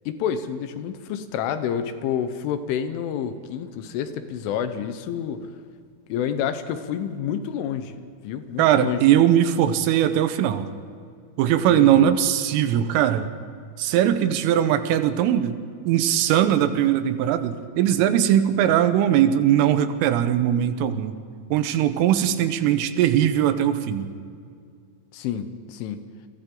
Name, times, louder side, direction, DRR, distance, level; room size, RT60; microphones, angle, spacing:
voice 1, 0.1-5.5 6.1-8.0 8.2-9.0 11.7-12.1 16.3-16.4 25.1-26.0, left 8 dB, 80° left, 9 dB, 3.4 m, -29 dB
voice 2, 8.6-10.7 11.4-13.3 13.8-21.2 21.5-24.1, right 10 dB, 85° right, 9 dB, 3.6 m, -20 dB
29.0 x 23.0 x 3.9 m, 2.2 s
omnidirectional pair, 5.7 m